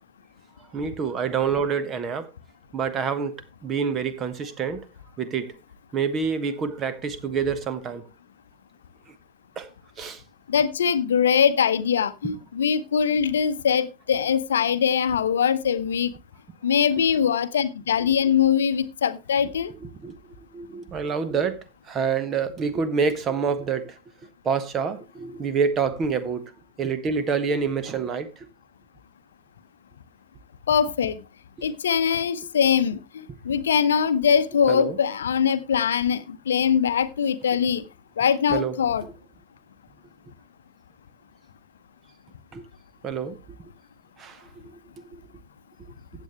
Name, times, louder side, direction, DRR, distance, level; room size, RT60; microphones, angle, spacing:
voice 1, 0.7-2.3 2.7-3.3 3.6-4.9 5.2-5.5 5.9-8.0 9.6-9.7 10.0-10.2 18.0-18.1 20.0-20.1 20.5-21.6 21.9-23.9 24.4-26.4 26.8-28.3 34.7-35.0 38.5-38.8 42.5-42.6 43.0-43.4 44.2-44.4 45.0-45.2, right 6 dB, 25° right, 1.3 m, -27 dB
voice 2, 10.5-16.1 16.6-19.7 30.7-31.2 31.6-37.8 38.2-39.1, left 7 dB, 65° left, 0.8 m, -22 dB
15.0 x 8.4 x 3.1 m
figure-of-eight pair, 90°, 0 cm